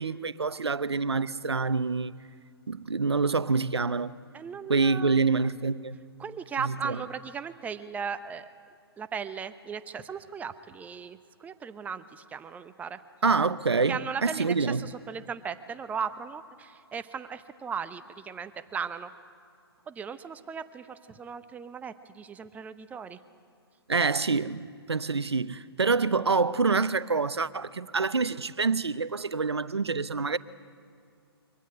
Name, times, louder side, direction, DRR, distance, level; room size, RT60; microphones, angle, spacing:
voice 1, 0.0-2.1 2.7-4.1 4.7-6.0 6.6-7.0 13.2-14.8 23.9-30.4, right 4 dB, 80° right, 0.8 m, -26 dB
voice 2, 4.3-5.2 6.2-8.5 9.0-13.0 13.9-19.1 19.9-23.2, right 6 dB, 10° right, 0.8 m, -37 dB
23.5 x 16.5 x 9.8 m
figure-of-eight pair, 125°, 14 cm